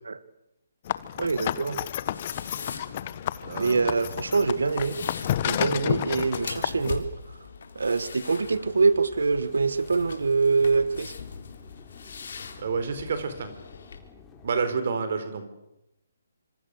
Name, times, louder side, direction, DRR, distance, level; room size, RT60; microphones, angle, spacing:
sound 1, 0.9-6.9, left 11 dB, 40° left, 1.2 m, -31 dB
voice 1, 1.2-1.8 3.6-5.0 5.4-7.1 7.8-11.1, right 4 dB, 80° right, 14 dB, 1.8 m, -24 dB
sound 2, 1.8-14.0, left 5 dB, 65° left, 3.8 m, -42 dB
voice 2, 3.4-3.8 4.0-4.2 12.6-13.5 14.4-15.5, right 5 dB, 55° right, 10 dB, 4.4 m, -29 dB
sound 3, 8.3-14.6, left 6 dB, 15° left, 4.4 m, -52 dB
26.0 x 25.5 x 6.7 m, 0.86 s
hypercardioid pair, 145°, 0 cm